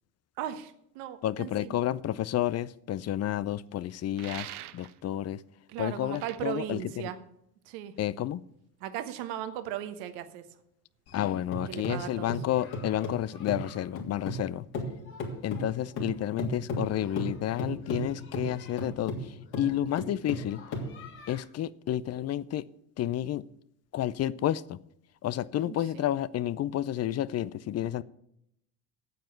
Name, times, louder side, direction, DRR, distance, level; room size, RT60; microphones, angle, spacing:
voice 1, 0.4-1.8 5.7-7.2 7.6-7.9 8.8-10.5 11.7-12.3 25.7-26.0, right 11 dB, 70° right, 1.3 m, -37 dB
voice 2, 1.2-5.4 5.8-7.1 8.0-8.4 11.1-14.6 15.4-20.6 21.3-22.6 23.0-23.4 23.9-24.8 25.2-28.0, left 12 dB, 35° left, 0.5 m, -31 dB
sound 1, 4.2-5.0 6.1-6.4, right 14 dB, 85° right, 0.6 m, -42 dB
sound 2, 11.1-14.5 14.7-21.4, left 1 dB, 60° left, 3.1 m, -36 dB
9.2 x 7.6 x 8.1 m
hypercardioid pair, 70°, 45 cm